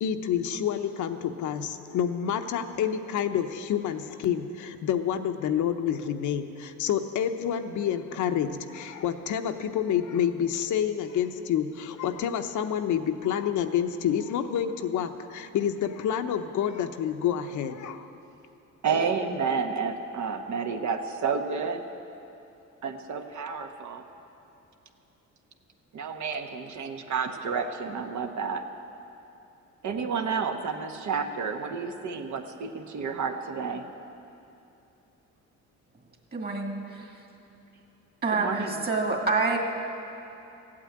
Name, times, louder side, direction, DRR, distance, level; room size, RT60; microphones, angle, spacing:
voice 1, 0.0-18.1, left 9 dB, 75° left, 7 dB, 0.9 m, -28 dB
voice 2, 18.8-21.8 22.8-24.0 25.9-28.6 29.8-33.8 38.3-38.8, right 5 dB, 65° right, 5 dB, 1.1 m, -30 dB
voice 3, 36.3-37.1 38.2-39.6, right 3 dB, 30° right, 1 dB, 2.2 m, -27 dB
15.0 x 8.8 x 8.7 m, 2.8 s
cardioid pair, 90°, 30 cm